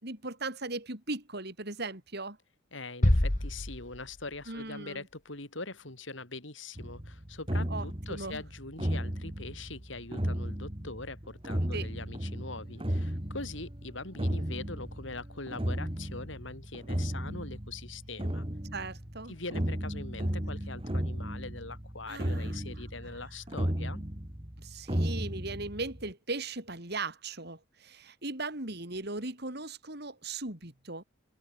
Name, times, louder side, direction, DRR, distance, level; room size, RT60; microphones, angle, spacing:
voice 1, 0.0-2.4 4.5-5.0 7.7-8.4 11.7-11.9 18.7-19.3 22.1-22.6 23.0-23.2 24.6-31.0, right 3 dB, 55° right, 5.0 m, -38 dB
voice 2, 2.7-18.4 19.3-24.0, left 3 dB, 70° left, 4.7 m, -42 dB
sound 1, 3.0-4.6, left 1 dB, 40° left, 1.6 m, -27 dB
sound 2, 6.8-26.1, equal, 25° right, 2.9 m, -35 dB
head